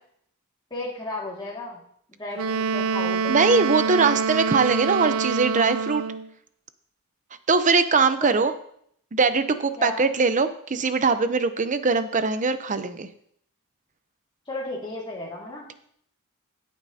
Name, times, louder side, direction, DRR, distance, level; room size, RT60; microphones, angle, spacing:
voice 1, 0.7-1.8 2.2-3.3 8.2-8.5 9.8-10.0 14.5-15.7, left 2 dB, 20° left, -5 dB, 2.1 m, -34 dB
Wind instrument woodwind instrument, 2.3-6.3, right 5 dB, 75° right, 0.5 m, -26 dB
voice 2, 3.3-6.0 7.5-8.5 9.1-13.1, right 4 dB, 35° right, 11 dB, 0.7 m, -21 dB
17.0 x 8.2 x 2.8 m, 0.67 s
head